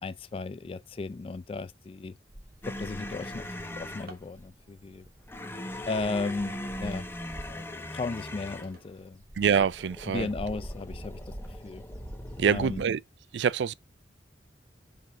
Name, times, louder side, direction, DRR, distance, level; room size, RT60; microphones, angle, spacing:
voice 1, 0.0-2.2 2.7-5.0 5.9-7.1 7.5-9.2 10.1-11.3 11.6-11.8 12.5-12.9, left 3 dB, 30° left, 0.3 m, -35 dB
sound 1, 2.3-7.8 8.3-12.8, right 1 dB, 20° right, 0.8 m, -45 dB
sound 2, 2.6-4.1 5.3-8.8 9.7-12.7, left 1 dB, 15° left, 0.9 m, -40 dB
Drawer open or close, 7.9-10.0 10.7-10.8 11.3-11.4 11.7-12.1, right 2 dB, 60° right, 1.8 m, -58 dB
voice 2, 9.4-10.3 12.4-13.0 13.3-13.7, right 7 dB, 75° right, 0.4 m, -25 dB
5.2 x 3.7 x 5.8 m
head